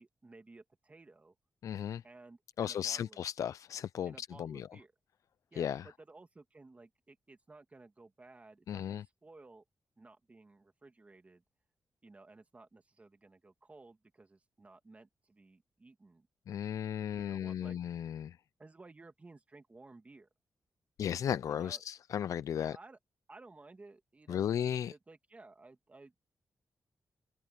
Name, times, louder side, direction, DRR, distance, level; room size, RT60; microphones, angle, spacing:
voice 1, 0.0-1.4 2.0-3.2 4.1-4.9 5.5-9.6 10.0-11.4 12.0-16.3 17.1-17.9 18.6-20.3 21.5-21.8 22.5-23.0 23.3-26.2, right 3 dB, 25° right, 2.3 m, -56 dB
voice 2, 1.6-2.0 2.6-4.7 5.6-5.9 8.7-9.0 16.5-18.4 21.0-22.8 24.3-24.9, left 9 dB, 75° left, 0.3 m, -35 dB
open air
wide cardioid pair, 130°, 6 cm